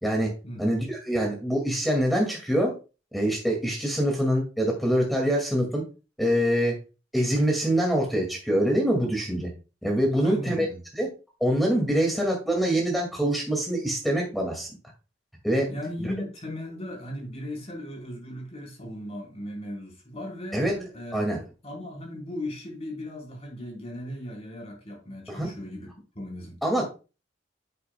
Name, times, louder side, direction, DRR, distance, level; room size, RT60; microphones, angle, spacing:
voice 1, 0.6-2.7 3.1-5.8 6.2-6.8 7.1-9.5 9.8-10.7 10.9-11.1 11.4-14.7 15.4-15.7 16.0-16.1 20.5-20.9 21.1-21.4 25.3-25.5 26.6-26.8, equal, ahead, 2.1 m, -24 dB
voice 2, 10.1-10.8 15.7-20.6 20.9-21.2 21.6-25.9 26.1-26.6, left 1 dB, 35° left, 4.1 m, -37 dB
10.0 x 8.4 x 2.3 m
head